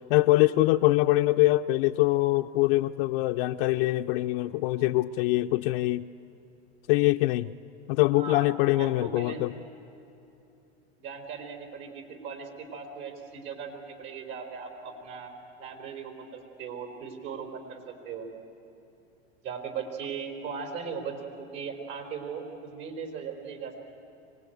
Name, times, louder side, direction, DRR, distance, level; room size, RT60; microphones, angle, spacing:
voice 1, 0.0-6.1 6.9-7.5 7.9-9.5, left 18 dB, 60° left, 7 dB, 0.6 m, -24 dB
voice 2, 8.1-8.5 8.8-9.4 11.0-15.3 15.6-18.3 19.4-23.8, right 6 dB, 55° right, 4 dB, 4.5 m, -38 dB
24.5 x 19.5 x 9.3 m, 2.9 s
hypercardioid pair, 105°, 33 cm